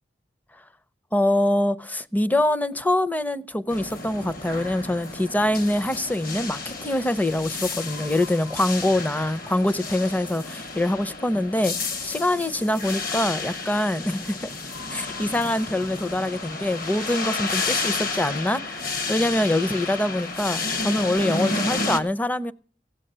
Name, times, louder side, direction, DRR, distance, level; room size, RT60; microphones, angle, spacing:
voice 1, 1.1-14.5 14.9-18.8 19.1-22.5, left 1 dB, 10° left, 0.5 m, -24 dB
sound 1, 3.7-22.0, left 3 dB, 55° left, 1.3 m, -31 dB
16.0 x 8.3 x 6.7 m
head